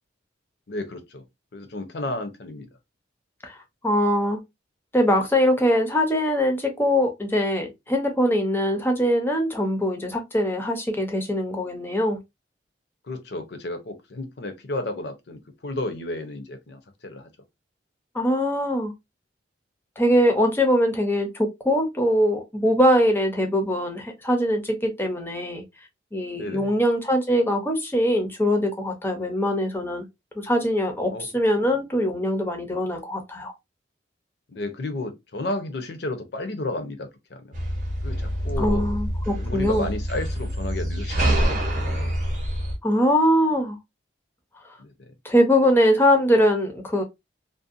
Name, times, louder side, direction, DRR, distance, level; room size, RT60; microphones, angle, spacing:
voice 1, 0.7-1.2 1.5-2.7 13.1-17.3 26.3-26.7 31.1-31.3 31.6-31.8 34.5-37.5 38.0-39.0 39.3-42.1 44.8-45.1, left 2 dB, 60° left, 0.6 m, -33 dB
voice 2, 3.8-4.4 4.9-12.2 18.1-18.9 20.0-25.6 26.1-30.1 30.4-33.5 38.6-39.9 42.8-43.8 45.2-47.0, equal, 10° left, 0.5 m, -22 dB
sound 1, 37.5-42.8, right 1 dB, 40° right, 0.7 m, -26 dB
2.5 x 2.1 x 2.4 m
head